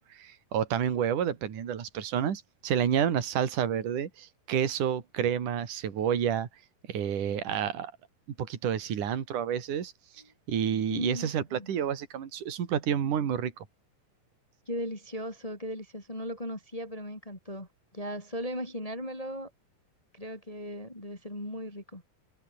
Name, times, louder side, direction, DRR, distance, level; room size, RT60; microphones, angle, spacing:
voice 1, 0.0-6.5 6.9-7.9 8.4-9.9 10.5-13.5, right 9 dB, 60° right, 4.0 m, -29 dB
voice 2, 10.9-11.7 14.7-17.7 17.9-19.5 20.1-22.0, equal, 10° left, 3.8 m, -37 dB
omnidirectional pair, 4.1 m